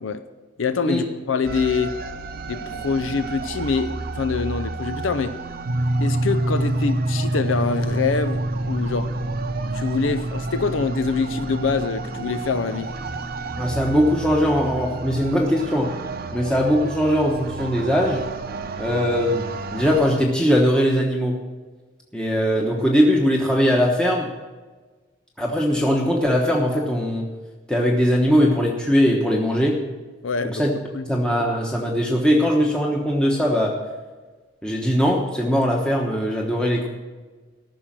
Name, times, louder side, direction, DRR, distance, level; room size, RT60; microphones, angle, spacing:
voice 1, 0.6-2.0 2.5-5.4 6.0-9.2 9.7-13.0 30.2-30.6 30.9-31.0, left 4 dB, 80° left, 0.5 m, -25 dB
sound 1, 1.4-20.2, right 3 dB, 50° right, 0.8 m, -33 dB
sound 2, 5.7-15.2, right 1 dB, 85° right, 1.0 m, -27 dB
voice 2, 13.6-15.9 16.3-18.3 18.8-19.5 19.7-21.4 22.1-24.3 25.4-27.2 27.7-29.8 30.4-30.7 31.1-33.8 34.6-36.9, equal, 5° left, 1.1 m, -20 dB
14.5 x 6.3 x 7.4 m
head